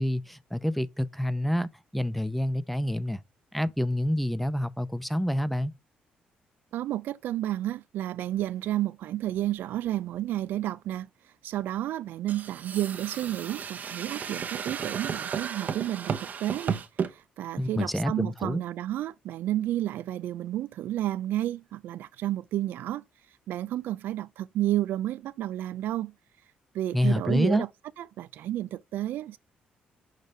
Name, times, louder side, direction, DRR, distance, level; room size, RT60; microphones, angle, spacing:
voice 1, 0.0-3.2 3.5-5.7 17.6-18.6 26.9-27.6, left 1 dB, ahead, 0.7 m, -28 dB
voice 2, 6.7-11.1 11.4-23.0 23.5-26.1 26.7-27.7 28.0-29.4, right 13 dB, 75° right, 0.3 m, -31 dB
sound 1, 12.3-17.1, right 6 dB, 55° right, 0.9 m, -34 dB
6.5 x 5.0 x 3.3 m
supercardioid pair, 65°, 3 cm